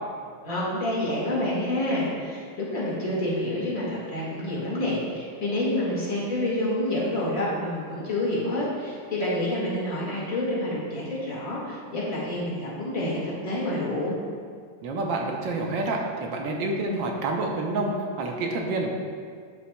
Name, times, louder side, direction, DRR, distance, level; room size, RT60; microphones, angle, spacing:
voice 1, 0.4-14.1, left 1 dB, 45° left, -6 dB, 2.1 m, -28 dB
voice 2, 14.8-18.9, right 2 dB, 75° right, 1 dB, 1.5 m, -28 dB
11.5 x 5.6 x 2.2 m, 2.1 s
omnidirectional pair, 2.1 m